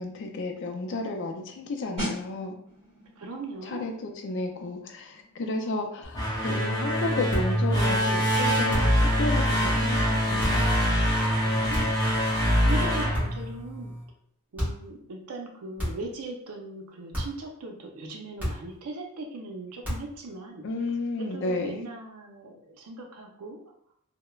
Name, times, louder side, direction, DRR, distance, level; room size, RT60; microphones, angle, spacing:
voice 1, 0.0-2.6 3.7-10.6 20.6-21.8, left 2 dB, 55° left, 4 dB, 0.4 m, -32 dB
sound 1, 2.0-12.5 12.7-13.0, equal, 30° right, 1.2 m, -44 dB
voice 2, 3.2-3.8 11.4-11.9 12.6-13.9 14.5-20.6 21.2-23.6, right 2 dB, 85° right, 2 dB, 0.5 m, -39 dB
sound 2, 6.0-14.0, equal, 20° left, 0.6 m, -24 dB
sound 3, 7.3-7.6 8.7-9.1 10.4-10.7 11.7-12.1 13.1-13.5 14.6-14.9 15.8-16.2 17.1-17.5 18.4-18.8 19.8-20.2, equal, 5° right, 1.1 m, -32 dB
3.1 x 2.1 x 2.3 m, 0.68 s
head